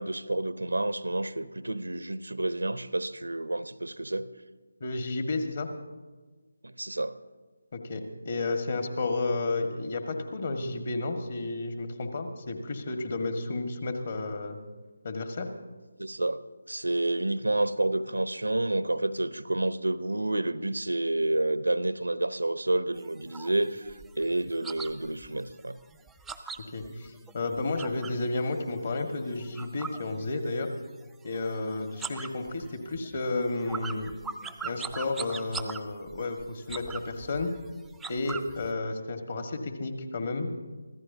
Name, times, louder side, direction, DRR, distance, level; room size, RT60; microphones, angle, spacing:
voice 1, 0.0-4.3 6.6-7.2 16.0-25.8, right 2 dB, 80° right, 14 dB, 0.7 m, -29 dB
voice 2, 4.8-5.7 7.7-14.6 15.0-15.5 26.7-30.7 31.2-34.1 34.6-37.5 38.1-40.5, left 2 dB, 45° left, 5 dB, 1.7 m, -32 dB
sound 1, 23.0-28.3 28.6-30.8 31.0-31.6 31.9-38.7, right 5 dB, 5° right, 0.4 m, -41 dB
25.0 x 15.0 x 2.8 m, 1.3 s
figure-of-eight pair, 155°, 0 cm